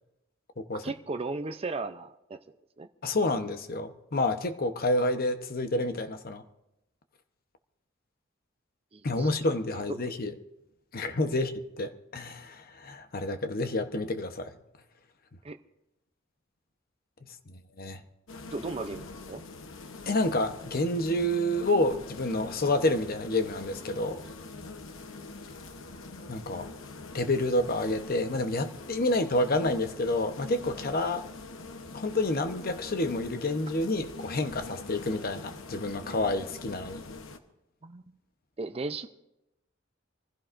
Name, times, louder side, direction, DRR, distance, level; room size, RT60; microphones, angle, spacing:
voice 1, 0.8-2.4 2.8-2.9 8.9-9.3 9.7-10.0 11.3-11.4 15.4-15.6 18.5-19.4 37.8-38.0 38.6-39.1, right 3 dB, 30° right, 0.5 m, -36 dB
voice 2, 3.0-6.4 9.0-10.3 10.9-14.5 17.5-18.0 20.1-24.2 26.3-26.7 27.1-31.3 31.9-37.0, left 2 dB, 50° left, 0.9 m, -29 dB
sound 1, 18.3-37.4, left 3 dB, 80° left, 1.0 m, -44 dB
25.5 x 15.5 x 2.6 m
head